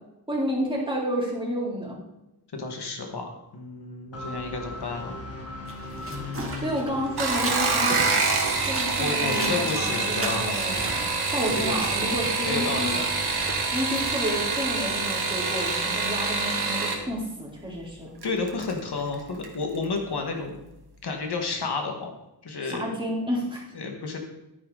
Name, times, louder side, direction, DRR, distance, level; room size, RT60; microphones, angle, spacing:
voice 1, 0.3-2.0 6.6-8.2 8.6-11.0 11.3-13.0 13.7-18.1 22.6-23.6, equal, 15° right, -4 dB, 3.8 m, -30 dB
voice 2, 2.5-5.2 6.1-7.0 9.0-10.6 11.5-12.1 12.4-13.0 18.2-20.5 21.0-22.1 22.4-22.9 23.7-24.2, left 3 dB, 80° left, 3 dB, 1.9 m, -31 dB
sound 1, 4.1-15.9, left 1 dB, 35° left, 2.2 m, -42 dB
sound 2, 5.6-15.6, right 2 dB, 35° right, 2.5 m, -39 dB
sound 3, 7.1-17.0 18.2-18.7 19.1-19.6 19.8-19.9, right 4 dB, 75° right, 2.1 m, -26 dB
12.0 x 10.0 x 4.1 m, 0.93 s
wide cardioid pair, 130°, 39 cm